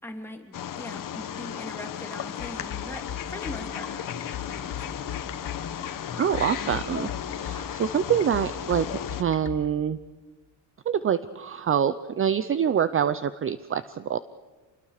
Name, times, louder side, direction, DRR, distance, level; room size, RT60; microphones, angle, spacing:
voice 1, 0.0-5.0, left 1 dB, 5° left, 2 dB, 2.8 m, -41 dB
Wild animals, 0.5-9.2, left 9 dB, 50° left, 1.4 m, -35 dB
sound 1, 2.4-9.6, left 11 dB, 80° left, 2.6 m, -36 dB
voice 2, 6.2-7.1 7.4-10.0 10.9-14.2, right 8 dB, 30° right, 14 dB, 0.6 m, -25 dB
28.0 x 21.0 x 6.6 m, 1.3 s
cardioid pair, 145°, 41 cm